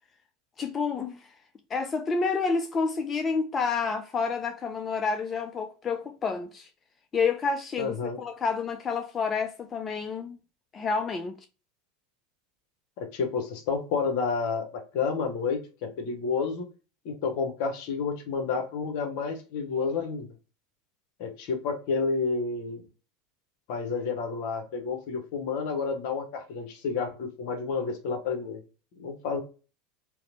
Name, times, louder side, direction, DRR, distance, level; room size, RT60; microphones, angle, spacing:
voice 1, 0.6-1.3 1.7-6.7 7.1-10.4 10.7-11.4, left 5 dB, 30° left, 0.3 m, -29 dB
voice 2, 7.8-8.2 13.0-16.7 17.0-20.3 21.2-22.8 23.7-28.6 29.0-29.4, left 5 dB, 60° left, 0.7 m, -30 dB
2.8 x 2.0 x 2.5 m
hypercardioid pair, 85°, 0 cm